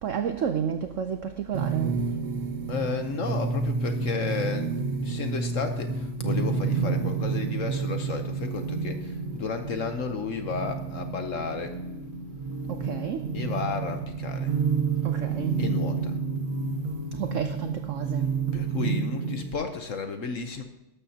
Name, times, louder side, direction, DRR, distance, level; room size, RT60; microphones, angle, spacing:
voice 1, 0.0-2.0 12.7-13.2 15.0-15.6 17.2-18.3, right 7 dB, 90° right, 0.6 m, -31 dB
sound 1, 1.5-19.5, right 5 dB, 50° right, 1.7 m, -30 dB
voice 2, 2.7-11.8 13.3-14.6 15.6-16.2 18.5-20.6, left 5 dB, 55° left, 1.0 m, -33 dB
12.5 x 12.0 x 2.8 m
omnidirectional pair, 2.1 m